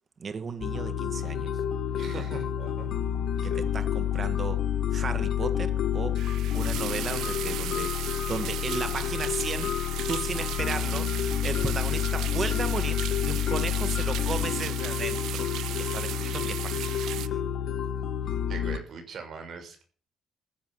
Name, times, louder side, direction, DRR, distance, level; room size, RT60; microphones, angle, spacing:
voice 1, 0.2-1.5 2.0-2.2 3.4-4.6 4.9-6.2 6.5-9.7 10.1-15.5 15.8-17.4, right 5 dB, 40° right, 2.0 m, -35 dB
sound 1, 0.6-18.8, left 9 dB, 70° left, 1.6 m, -29 dB
voice 2, 2.0-2.9 3.4-3.6 18.5-19.8, right 5 dB, 60° right, 6.3 m, -41 dB
sound 2, 6.2-17.3, right 13 dB, 85° right, 0.7 m, -36 dB
15.0 x 8.1 x 7.8 m
cardioid pair, 90°, 0 cm